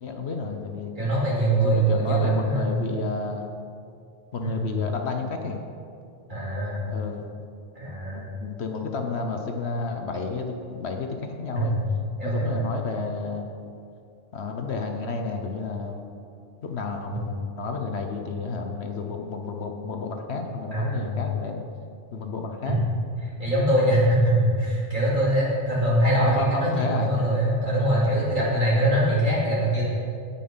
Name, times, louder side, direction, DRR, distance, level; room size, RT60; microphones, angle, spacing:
voice 1, 0.0-0.9 1.5-3.5 4.3-5.6 6.9-7.3 8.1-11.8 12.2-13.8 14.3-16.0 16.6-21.6 22.1-22.8 26.2-27.2, left 4 dB, 65° left, 4 dB, 1.2 m, -31 dB
voice 2, 1.0-2.7 4.4-4.6 6.3-6.9 7.8-8.3 11.5-11.8 12.2-12.7 20.7-21.1 22.6-22.8 23.4-29.8, right 1 dB, 40° right, -8 dB, 3.8 m, -23 dB
17.0 x 5.9 x 5.5 m, 2.4 s
omnidirectional pair, 1.2 m